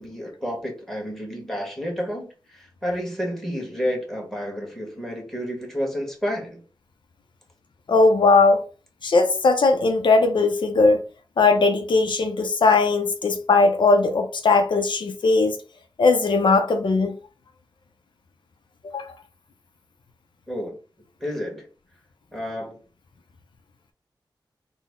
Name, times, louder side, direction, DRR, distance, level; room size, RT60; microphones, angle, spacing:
voice 1, 0.0-6.6 20.5-20.8 21.2-21.7 22.3-22.8, equal, 5° left, 1.4 m, -30 dB
voice 2, 7.9-8.6 9.0-11.0 11.4-15.6 16.0-17.1 18.9-19.0, left 3 dB, 70° left, 0.5 m, -19 dB
3.8 x 2.0 x 3.6 m
wide cardioid pair, 80°, 8 cm